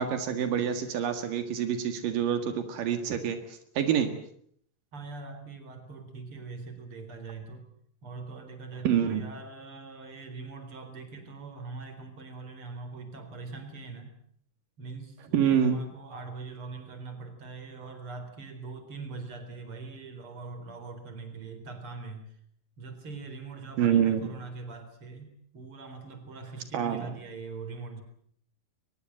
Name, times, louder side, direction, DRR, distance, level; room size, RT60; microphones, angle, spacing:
voice 1, 0.0-4.1 8.9-9.2 15.3-15.8 23.8-24.3 26.7-27.1, right 8 dB, 85° right, 8 dB, 3.5 m, -26 dB
voice 2, 4.9-7.6 8.0-14.1 14.8-22.3 22.8-28.0, right 4 dB, 40° right, 8 dB, 4.7 m, -42 dB
23.0 x 21.5 x 7.7 m, 0.65 s
omnidirectional pair, 3.8 m